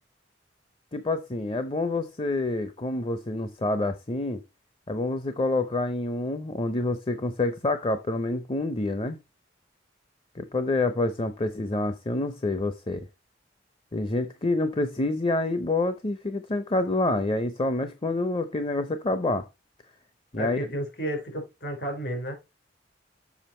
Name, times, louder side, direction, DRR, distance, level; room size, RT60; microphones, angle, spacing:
voice 1, 0.9-4.4 4.9-9.2 10.4-13.1 13.9-19.5 20.3-20.6, left 2 dB, 30° left, 0.6 m, -27 dB
voice 2, 20.3-22.3, right 1 dB, 60° left, 4.2 m, -32 dB
7.2 x 6.1 x 4.3 m
head